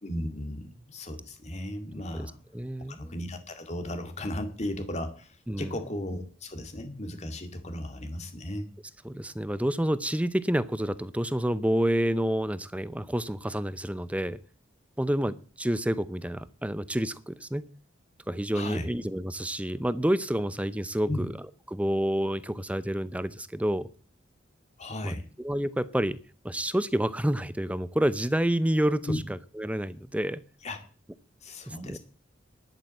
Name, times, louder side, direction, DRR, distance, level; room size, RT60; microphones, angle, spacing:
voice 1, 0.0-2.4 2.9-8.7 18.5-18.9 21.1-21.3 24.8-25.3 29.1-29.2 30.6-30.8 31.4-32.0, left 1 dB, 35° left, 6 dB, 2.3 m, -35 dB
voice 2, 2.5-3.1 5.5-5.7 9.0-14.4 15.0-17.7 18.3-21.3 21.7-23.9 25.0-26.2 26.4-30.4 31.7-32.0, right 1 dB, 5° right, 16 dB, 0.6 m, -29 dB
11.0 x 8.7 x 7.7 m, 0.39 s
head